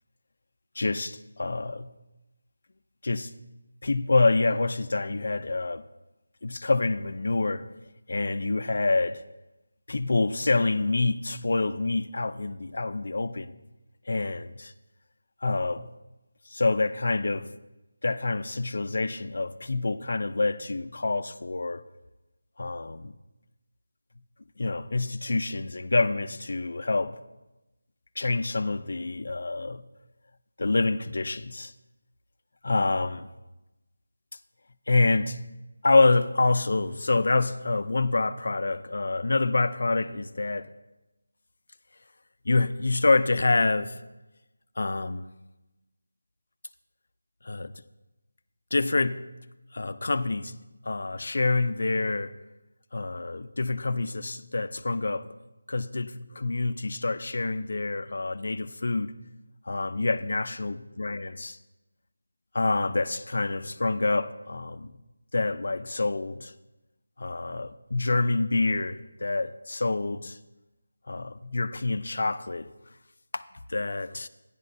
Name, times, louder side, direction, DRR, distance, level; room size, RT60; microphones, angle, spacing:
voice 1, 0.8-1.9 3.0-3.3 3.8-5.8 6.4-7.7 8.1-9.2 9.9-13.5 14.1-14.7 15.4-15.9 16.5-17.5 18.0-21.8 22.6-23.1 24.6-27.2 28.2-29.8 30.6-31.7 32.6-33.3 34.9-35.4 35.8-40.7 42.5-44.0 44.8-45.3 47.4-47.7 48.7-49.2 49.7-50.6 50.8-52.3 52.9-55.3 55.7-59.1 59.7-61.6 62.5-64.9 65.3-66.5 67.2-70.4 71.1-72.7 73.3-73.4 73.7-74.3, left 3 dB, 50° left, 0.4 m, -27 dB
15.0 x 10.5 x 2.6 m
figure-of-eight pair, 180°, 0 cm